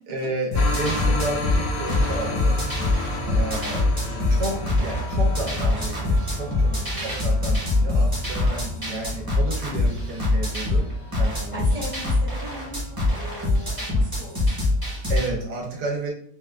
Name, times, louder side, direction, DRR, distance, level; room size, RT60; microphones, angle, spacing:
voice 1, 0.1-2.6 3.2-6.7 7.0-10.9 11.1-11.8 15.1-16.1, right 2 dB, 75° right, 0 dB, 1.4 m, -32 dB
sound 1, 0.5-15.4, left 1 dB, 75° left, 1.1 m, -33 dB
sound 2, 0.5-15.3, left 2 dB, 20° right, 0.7 m, -23 dB
voice 2, 3.2-4.2 5.5-6.1 6.7-7.1 11.3-15.0, equal, 55° left, -8 dB, 0.3 m, -40 dB
3.9 x 2.3 x 2.3 m, 0.62 s
omnidirectional pair, 1.8 m